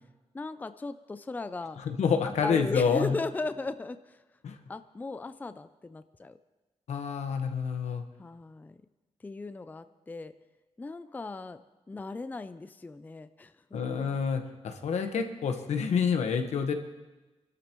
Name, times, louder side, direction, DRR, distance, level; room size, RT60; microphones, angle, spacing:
voice 1, 0.3-1.8 2.2-4.2 4.7-6.4 8.2-8.8 9.2-10.3 10.8-11.6 11.9-14.0, left 3 dB, 15° left, 11 dB, 0.4 m, -37 dB
voice 2, 1.8-3.2 4.4-4.6 6.9-8.0 13.7-16.7, left 6 dB, 85° left, 6 dB, 1.3 m, -28 dB
26.0 x 12.5 x 3.1 m, 1.1 s
wide cardioid pair, 130°, 11 cm